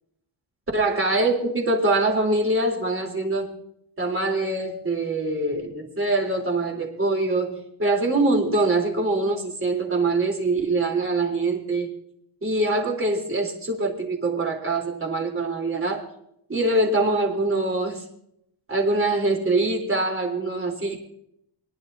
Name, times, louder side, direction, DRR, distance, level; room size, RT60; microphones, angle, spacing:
voice 1, 0.7-3.6 4.0-11.9 12.4-16.1 16.5-18.0 18.7-21.0, right 2 dB, 30° right, 0 dB, 3.8 m, -24 dB
25.0 x 11.0 x 2.8 m, 0.75 s
cardioid pair, 100°, 41 cm